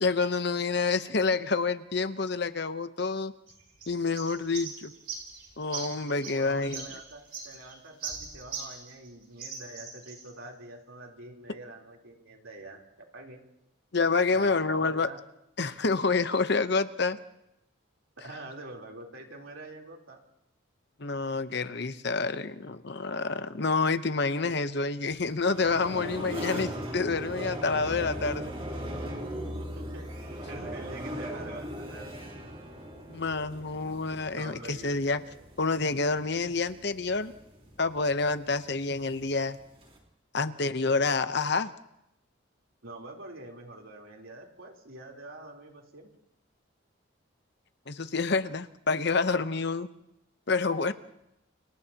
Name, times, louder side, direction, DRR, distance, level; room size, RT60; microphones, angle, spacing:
voice 1, 0.0-3.3 3.9-4.9 5.6-6.8 13.9-15.1 15.6-17.2 21.0-28.5 33.1-35.2 35.6-37.3 37.8-39.6 40.3-41.7 47.9-49.9 50.5-50.9, left 4 dB, 55° left, 11 dB, 0.9 m, -28 dB
sound 1, 3.5-9.1 9.4-10.3, right 5 dB, 50° right, 6.4 m, -41 dB
voice 2, 6.2-13.4 14.3-15.2 18.2-20.2 29.6-32.1 34.3-35.2 42.8-46.1, right 2 dB, 80° right, 0 dB, 3.7 m, -46 dB
sound 2, 25.1-40.0, equal, 30° right, 4.1 m, -39 dB
30.0 x 29.5 x 2.9 m, 0.83 s
head